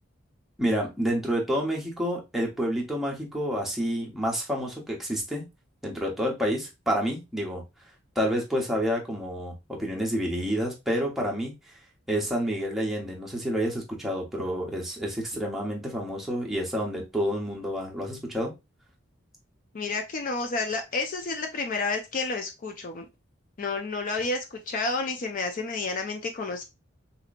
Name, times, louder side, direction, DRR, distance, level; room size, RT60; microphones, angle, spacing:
voice 1, 0.6-5.4 5.8-7.6 8.2-11.6 12.1-18.5, equal, ahead, -3 dB, 0.9 m, -29 dB
voice 2, 19.7-23.1 23.6-26.6, left 3 dB, 40° left, 4 dB, 0.4 m, -30 dB
3.9 x 2.9 x 2.5 m, 0.24 s
head